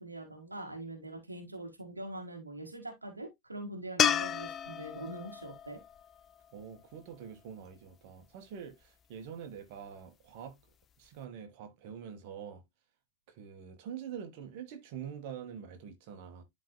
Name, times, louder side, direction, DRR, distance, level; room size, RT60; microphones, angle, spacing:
voice 1, 0.0-5.8, right 1 dB, 80° right, 1.7 m, -43 dB
sound 1, 4.0-7.2 10.5-10.6, left 9 dB, 25° left, 0.5 m, -33 dB
voice 2, 6.5-10.5 11.0-12.6 13.3-16.4, right 8 dB, 50° right, 1.8 m, -45 dB
12.0 x 4.1 x 2.2 m
figure-of-eight pair, 90°, 0 cm